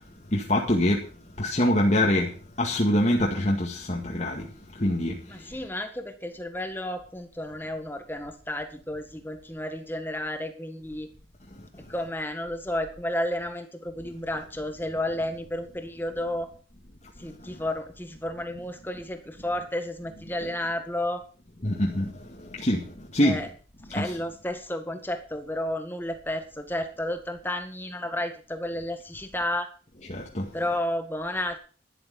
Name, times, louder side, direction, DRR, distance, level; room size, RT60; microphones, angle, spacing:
voice 1, 0.3-1.1 1.4-4.5 4.7-5.5 17.4-17.6 21.6-23.4 23.9-24.2 30.1-30.5, left 1 dB, 40° left, -1 dB, 2.0 m, -25 dB
voice 2, 5.3-11.1 11.9-16.5 17.2-21.2 23.2-23.5 23.9-29.7 30.5-31.6, left 1 dB, 10° left, 7 dB, 1.7 m, -32 dB
12.0 x 11.5 x 5.4 m, 0.39 s
head